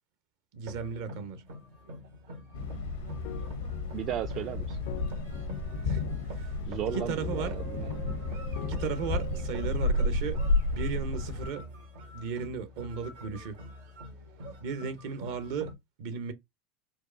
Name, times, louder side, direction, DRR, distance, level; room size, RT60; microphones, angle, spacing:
voice 1, 0.5-1.4 4.3-4.6 5.8-6.0 6.3-6.5 6.9-7.5 8.7-10.4 10.7-11.6 12.1-13.6 14.6-15.7 16.0-16.3, right 6 dB, 70° right, 0.8 m, -35 dB
sound 1, 0.6-15.7, equal, 90° right, 1.6 m, -45 dB
Thunder, 2.5-11.5, left 2 dB, 90° left, 0.9 m, -32 dB
sound 2, 3.2-10.0, left 11 dB, 70° left, 0.4 m, -47 dB
voice 2, 3.9-4.8 6.6-7.9, right 11 dB, 45° right, 0.3 m, -35 dB
4.4 x 2.4 x 2.6 m
hypercardioid pair, 95°, 0 cm